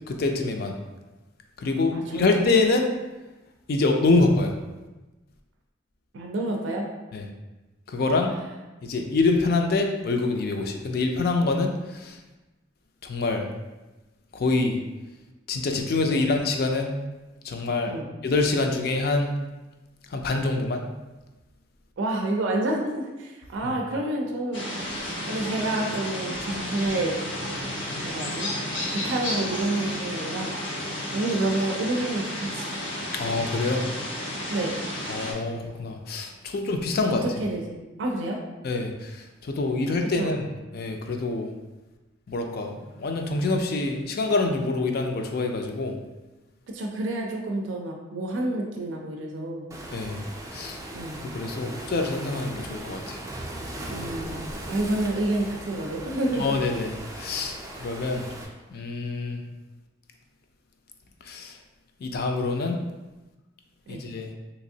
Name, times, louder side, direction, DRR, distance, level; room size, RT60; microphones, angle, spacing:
voice 1, 0.1-0.7 1.6-2.9 3.7-4.5 7.1-7.2 7.9-8.3 8.8-12.2 13.0-13.5 14.3-14.8 15.5-17.0 17.4-17.9 18.2-19.3 20.1-20.9 23.6-23.7 33.2-33.8 35.1-37.2 38.6-40.5 40.7-41.5 42.3-46.0 49.9-50.2 50.5-50.8 51.2-53.2 56.4-58.2 58.7-59.4 61.3-61.6 62.0-62.8 63.9-64.3, left 3 dB, 55° left, 4 dB, 0.4 m, -25 dB
voice 2, 1.9-2.4 6.1-6.9 8.2-8.4 16.1-16.3 17.9-18.1 22.0-24.6 25.3-27.2 27.5-27.7 28.0-28.5 28.9-30.5 31.1-32.7 34.5-34.7 37.2-38.4 40.1-40.3 46.7-49.7 50.9-51.2 53.9-54.4 54.7-56.4 63.9-64.0, right 2 dB, 80° right, 1 dB, 0.4 m, -29 dB
sound 1, 24.5-35.3, left 1 dB, 85° left, 0.9 m, -32 dB
Waves surf, 49.7-58.5, right 1 dB, 20° right, 0.4 m, -38 dB
3.4 x 2.9 x 2.7 m, 1.1 s
head